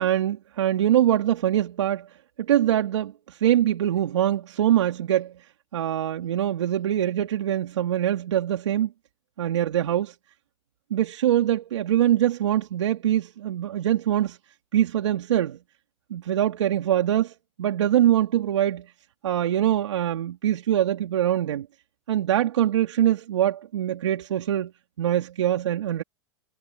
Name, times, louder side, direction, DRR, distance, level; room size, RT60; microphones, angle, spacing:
voice 1, 0.0-2.1 2.4-5.4 5.7-8.9 9.4-10.1 10.9-14.4 14.7-15.6 16.1-18.9 19.2-21.7 22.1-24.7 25.0-26.0, right 11 dB, 80° right, 3.3 m, -23 dB
hypercardioid pair, 105°, 15 cm